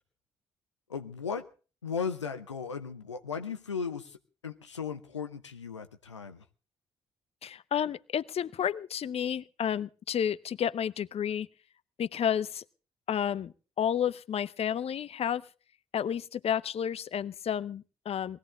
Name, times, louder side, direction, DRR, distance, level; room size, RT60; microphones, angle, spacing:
voice 1, 0.9-1.5 1.8-6.5, left 6 dB, 90° left, 7 dB, 0.7 m, -36 dB
voice 2, 7.4-11.5 12.0-12.6 13.1-15.4 15.9-18.4, left 9 dB, 45° left, 16 dB, 0.7 m, -31 dB
20.0 x 16.0 x 3.7 m, 0.36 s
figure-of-eight pair, 40°, 15 cm